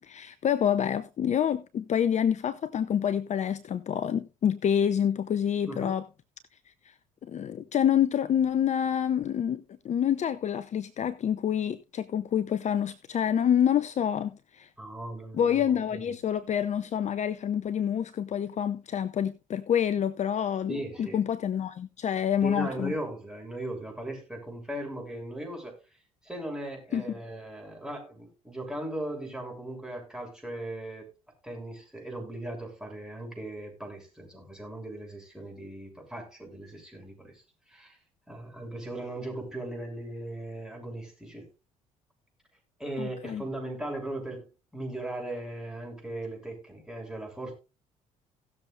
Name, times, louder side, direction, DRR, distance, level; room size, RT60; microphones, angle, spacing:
voice 1, 0.0-6.0 6.8-6.9 7.2-14.7 15.3-22.9 26.9-27.0 43.0-43.4, left 9 dB, 45° left, 0.7 m, -27 dB
voice 2, 14.8-16.0 20.7-21.2 22.4-25.8 26.2-31.1 31.4-37.4 37.7-38.0 38.3-41.5 42.8-44.4 44.7-47.5, right 1 dB, 5° right, 6.9 m, -38 dB
18.0 x 7.2 x 2.5 m
hypercardioid pair, 55°, 17 cm